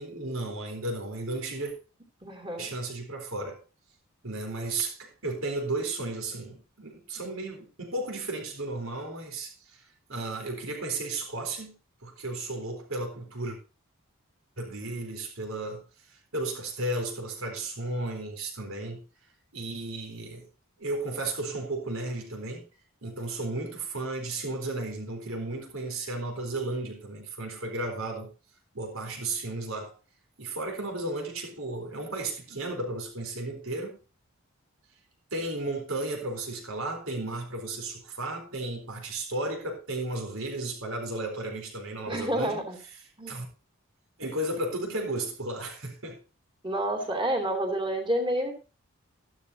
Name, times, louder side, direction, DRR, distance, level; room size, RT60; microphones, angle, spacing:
voice 1, 0.0-1.7 2.6-3.6 4.2-9.8 10.1-13.6 14.6-19.0 19.5-20.5 20.8-22.7 23.0-28.3 28.7-29.9 30.4-34.0 35.3-42.6 43.3-43.5 44.2-46.2, right 2 dB, 70° right, 4.0 m, -34 dB
voice 2, 2.2-2.7 42.1-42.8 43.2-43.4 46.6-48.5, right 1 dB, 25° right, 2.8 m, -29 dB
14.0 x 12.0 x 2.8 m
head